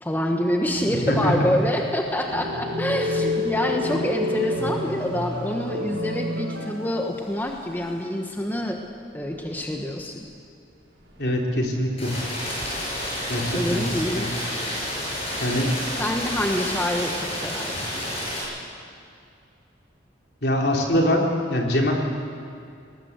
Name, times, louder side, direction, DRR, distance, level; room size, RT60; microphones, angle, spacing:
voice 1, 0.0-8.8 9.1-10.3 13.5-14.3 16.0-18.0, left 1 dB, 10° left, 2 dB, 1.2 m, -26 dB
sound 1, 0.7-7.2 7.5-7.6 9.3-9.9 11.0-11.7, left 1 dB, 90° right, 6.4 m, -29 dB
voice 2, 1.1-1.5 11.2-12.1 13.3-13.8 14.2-14.3 15.4-15.7 20.4-21.9, left 1 dB, 65° left, 0 dB, 3.5 m, -23 dB
Rain, 12.0-18.4, equal, 35° left, 6.7 m, -30 dB
20.0 x 19.0 x 8.2 m, 2.4 s
head